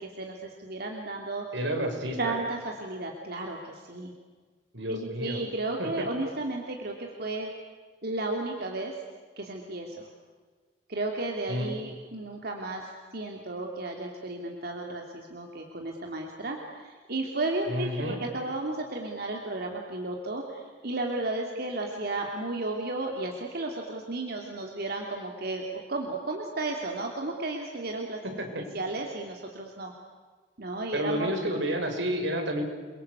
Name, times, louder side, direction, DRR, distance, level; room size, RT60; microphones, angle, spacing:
voice 1, 0.0-1.4 2.2-4.1 4.9-7.5 8.0-8.9 9.4-10.1 10.9-28.4 28.7-29.9 30.6-31.3, right 2 dB, 60° right, 1 dB, 2.9 m, -33 dB
voice 2, 1.5-2.3 4.7-5.4 5.8-6.1 11.5-11.7 17.7-18.2 28.4-28.6 30.9-32.6, equal, 85° right, 3 dB, 5.8 m, -30 dB
29.5 x 23.5 x 8.3 m, 1.5 s
head